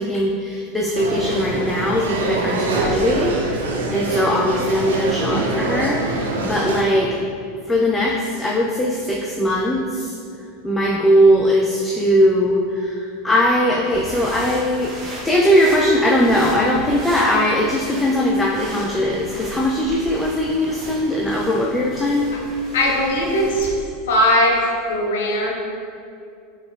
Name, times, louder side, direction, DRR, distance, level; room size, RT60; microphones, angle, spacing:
voice 1, 0.0-7.2 7.7-10.2 10.6-14.9 15.2-22.3, equal, 10° left, -2 dB, 0.4 m, -20 dB
sound 1, 0.9-6.8, right 2 dB, 80° right, 0.5 m, -24 dB
sound 2, 13.8-23.7, right 1 dB, 35° right, 0.9 m, -36 dB
voice 2, 22.7-23.7 24.1-24.6 24.9-25.5, left 1 dB, 75° left, -1 dB, 0.7 m, -19 dB
4.8 x 3.3 x 2.5 m, 2.4 s
hypercardioid pair, 90°, 0 cm